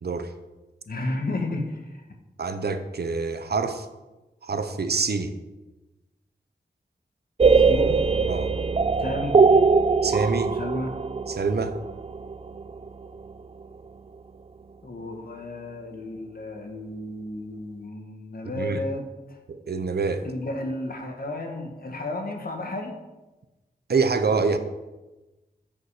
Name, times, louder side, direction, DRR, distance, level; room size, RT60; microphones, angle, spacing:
voice 1, 0.0-0.3 2.4-3.9 4.4-5.3 8.3-8.5 10.0-10.6 11.3-11.8 18.6-18.8 19.5-20.3 23.9-24.6, right 4 dB, 65° right, 9 dB, 0.9 m, -26 dB
voice 2, 0.8-2.0 7.5-8.0 9.0-9.4 10.4-11.0 14.8-19.4 20.2-23.0, left 2 dB, 60° left, 3 dB, 1.6 m, -33 dB
sound 1, 7.4-13.2, right 4 dB, 35° right, 0.4 m, -21 dB
14.0 x 5.6 x 5.0 m, 1.1 s
wide cardioid pair, 60°, 17 cm